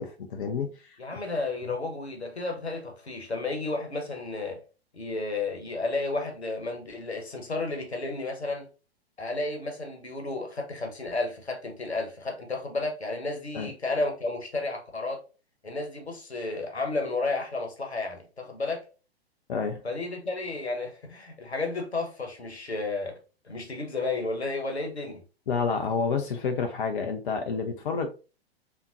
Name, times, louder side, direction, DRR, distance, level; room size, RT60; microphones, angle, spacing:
voice 1, 0.0-1.0 13.5-13.7 19.5-19.8 25.5-28.1, left 5 dB, 55° left, 0.5 m, -29 dB
voice 2, 1.0-4.6 4.9-8.7 9.2-15.2 15.6-18.9 19.8-23.1 23.4-25.2, left 3 dB, 85° left, 1.0 m, -32 dB
3.5 x 2.8 x 2.6 m
figure-of-eight pair, 110°, 32 cm